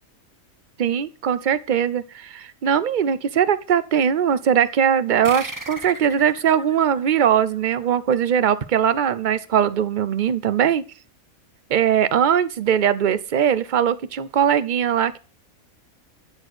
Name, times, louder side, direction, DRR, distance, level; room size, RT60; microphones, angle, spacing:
voice 1, 0.8-10.8 11.7-15.2, right 8 dB, 50° right, 15 dB, 0.6 m, -20 dB
sound 1, 5.2-8.3, right 2 dB, 15° right, 0.9 m, -37 dB
12.5 x 4.5 x 7.9 m, 0.37 s
omnidirectional pair, 1.5 m